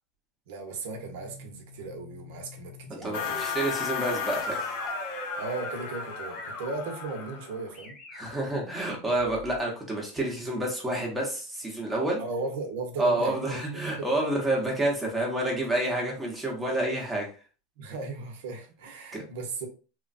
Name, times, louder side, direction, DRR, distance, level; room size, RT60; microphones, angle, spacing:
voice 1, 0.5-4.0 5.3-8.0 12.2-14.1 17.8-19.7, right 3 dB, 75° right, 3 dB, 0.8 m, -37 dB
sound 1, 1.0-9.6, equal, 20° left, 0.8 m, -46 dB
voice 2, 3.0-4.6 8.1-12.2 13.0-17.3 19.1-19.2, right 1 dB, 10° right, -2 dB, 0.8 m, -29 dB
sound 2, 3.1-7.7, left 5 dB, 60° left, 0.6 m, -34 dB
3.0 x 2.2 x 2.5 m, 0.36 s
supercardioid pair, 145°, 0 cm